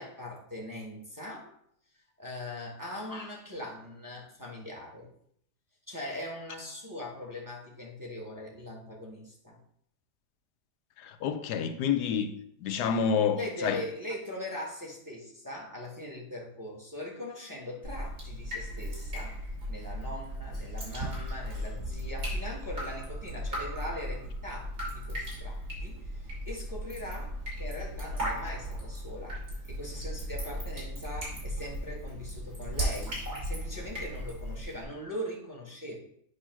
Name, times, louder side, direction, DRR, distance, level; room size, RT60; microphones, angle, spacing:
voice 1, 0.0-1.5 2.2-5.1 5.9-9.6 13.3-29.4 29.6-36.0, left 1 dB, 15° right, 1.0 m, -41 dB
voice 2, 11.0-12.3 12.6-13.8, left 7 dB, 85° left, 1.2 m, -28 dB
Drip, 17.8-34.8, equal, 60° right, 3.0 m, -36 dB
8.1 x 2.8 x 5.7 m
omnidirectional pair, 1.7 m